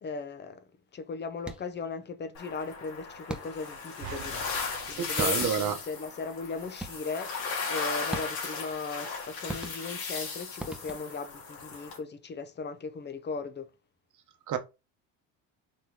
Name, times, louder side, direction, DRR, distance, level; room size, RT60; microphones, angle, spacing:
voice 1, 0.0-0.6 0.9-4.5 4.9-7.3 7.7-13.7, left 4 dB, 25° left, 0.7 m, -37 dB
sound 1, 1.4-1.9 3.3-3.8 4.8-4.9 5.2-5.8 6.8-7.3 8.1-8.7 9.5-10.2 10.6-11.3, right 1 dB, ahead, 0.8 m, -40 dB
sound 2, 2.3-12.0, left 5 dB, 80° left, 2.1 m, -36 dB
sound 3, 4.0-6.4, right 7 dB, 75° right, 0.9 m, -46 dB
voice 2, 5.0-5.8 14.5-14.6, right 8 dB, 50° right, 1.0 m, -29 dB
4.2 x 3.0 x 3.7 m
supercardioid pair, 95°, 40 cm